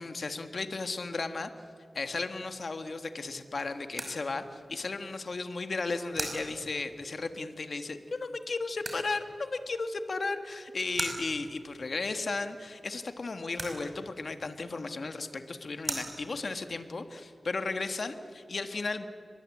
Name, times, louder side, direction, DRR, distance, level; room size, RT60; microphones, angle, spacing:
voice 1, 0.0-1.5 1.9-19.0, left 3 dB, 55° left, 8 dB, 1.5 m, -35 dB
sound 1, 2.0-16.8, right 2 dB, 35° right, 5.4 m, -45 dB
28.5 x 23.0 x 8.5 m, 2.4 s
wide cardioid pair, 100°, 0 cm